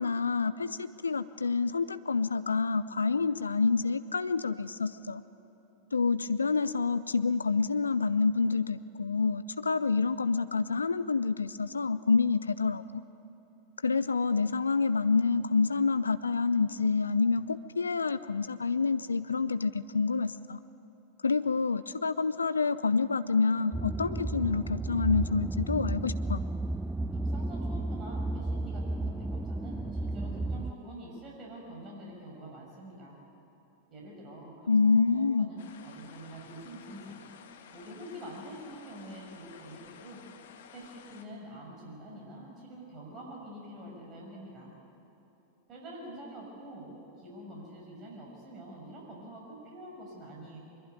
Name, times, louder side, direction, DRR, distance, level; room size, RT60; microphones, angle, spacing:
voice 1, 0.0-5.2 5.9-13.0 13.8-20.6 21.2-26.4 34.7-35.5, left 4 dB, 75° left, 14 dB, 0.5 m, -28 dB
sound 1, 23.7-30.7, right 2 dB, 10° right, 0.5 m, -33 dB
voice 2, 27.1-33.2 33.9-37.2 37.7-40.2 40.7-44.7 45.7-50.6, right 1 dB, 30° right, -2 dB, 6.5 m, -46 dB
sound 2, 35.6-41.3, left 8 dB, 60° left, 1.7 m, -53 dB
23.5 x 22.0 x 9.5 m, 3.0 s
figure-of-eight pair, 90°, 0 cm